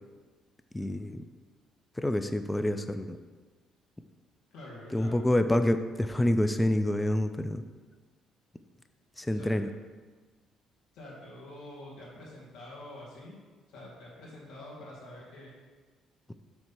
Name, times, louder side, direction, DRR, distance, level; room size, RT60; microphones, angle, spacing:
voice 1, 0.7-1.2 2.0-3.2 4.9-7.6 9.2-9.7, left 1 dB, 10° left, 9 dB, 0.4 m, -27 dB
voice 2, 4.5-5.1 9.3-9.6 10.9-13.4 13.7-15.5, left 1 dB, 80° left, -6 dB, 2.0 m, -46 dB
7.5 x 3.2 x 6.0 m, 1.4 s
cardioid pair, 120°, 0 cm